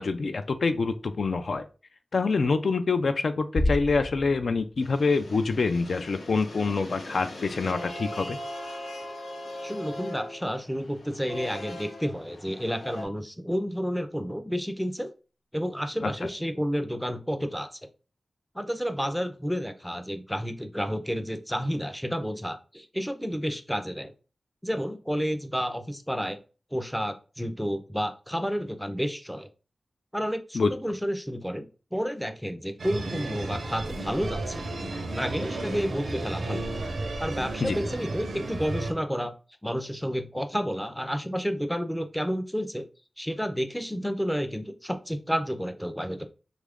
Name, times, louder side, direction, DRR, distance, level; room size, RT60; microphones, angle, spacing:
voice 1, 0.0-1.7 2.1-8.4 16.0-16.1 30.5-30.7 37.6-37.8, left 4 dB, 70° left, 9 dB, 0.3 m, -26 dB
sound 1, 3.6-5.4, left 1 dB, 40° left, 0.8 m, -30 dB
sound 2, 4.8-13.1, left 1 dB, 85° left, 0.8 m, -40 dB
voice 2, 9.6-15.1 15.5-17.8 18.5-24.1 24.6-26.4 26.7-29.5 30.1-31.7 31.9-34.6 35.1-36.6 37.2-39.3 39.6-42.9 43.2-46.3, equal, ahead, 8 dB, 0.4 m, -30 dB
sound 3, 32.8-38.9, right 2 dB, 85° right, 0.6 m, -33 dB
3.0 x 2.4 x 3.4 m, 0.34 s
wide cardioid pair, 105°, 0 cm